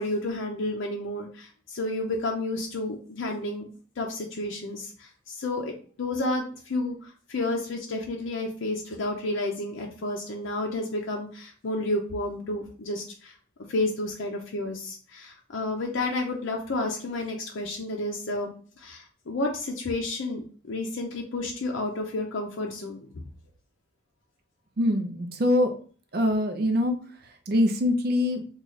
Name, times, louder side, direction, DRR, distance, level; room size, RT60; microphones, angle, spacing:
voice 1, 0.0-3.6 4.0-13.3 13.7-23.2, left 2 dB, 80° left, 0 dB, 0.5 m, -31 dB
voice 2, 24.8-25.7 26.1-27.0 27.2-28.5, left 1 dB, 50° right, 6 dB, 0.5 m, -24 dB
3.1 x 2.3 x 3.9 m, 0.43 s
head